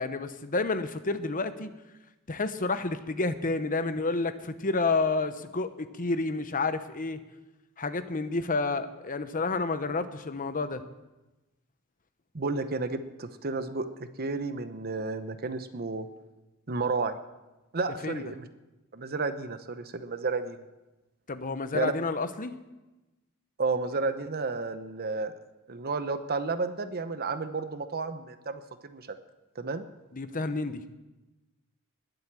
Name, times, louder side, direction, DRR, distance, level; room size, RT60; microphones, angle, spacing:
voice 1, 0.0-1.7 2.3-7.2 7.8-10.8 18.0-18.2 21.3-22.5 30.1-30.8, left 3 dB, 40° left, 11 dB, 1.0 m, -30 dB
voice 2, 12.3-13.9 14.2-16.1 16.7-17.2 17.7-18.5 18.9-20.6 21.7-21.9 23.6-25.3 25.7-29.1 29.6-29.8, right 3 dB, 45° right, 10 dB, 0.9 m, -31 dB
20.5 x 8.0 x 7.5 m, 1.1 s
head